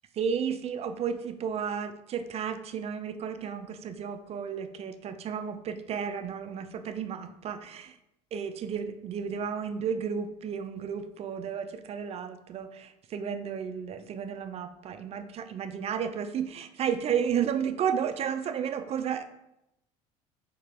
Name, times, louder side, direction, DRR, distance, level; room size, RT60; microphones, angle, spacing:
voice 1, 0.2-7.9 8.3-19.3, right 7 dB, 40° right, 10 dB, 0.4 m, -32 dB
4.9 x 3.3 x 3.3 m, 0.84 s
supercardioid pair, 90°, 15 cm